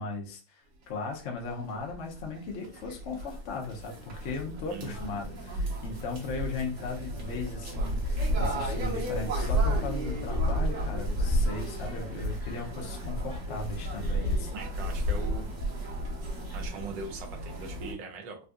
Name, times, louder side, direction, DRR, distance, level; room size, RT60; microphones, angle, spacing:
voice 1, 0.0-14.5, left 3 dB, 65° left, 0 dB, 0.7 m, -37 dB
sound 1, 1.1-1.2 1.4-17.9, equal, 50° right, 1.1 m, -32 dB
voice 2, 4.7-5.2 14.5-15.5 16.5-18.4, right 5 dB, 80° right, 3 dB, 1.4 m, -41 dB
3.7 x 2.6 x 2.3 m, 0.36 s
omnidirectional pair, 2.0 m